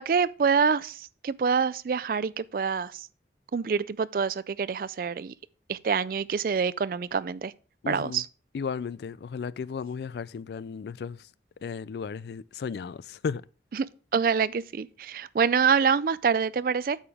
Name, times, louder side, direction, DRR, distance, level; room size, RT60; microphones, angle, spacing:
voice 1, 0.0-3.1 3.5-5.3 5.7-7.5 7.9-8.3 13.7-13.9 14.1-17.0, right 6 dB, 50° right, 0.3 m, -26 dB
voice 2, 7.8-8.2 8.5-11.3 11.6-13.4, left 6 dB, 65° left, 0.3 m, -34 dB
8.7 x 6.9 x 3.5 m
head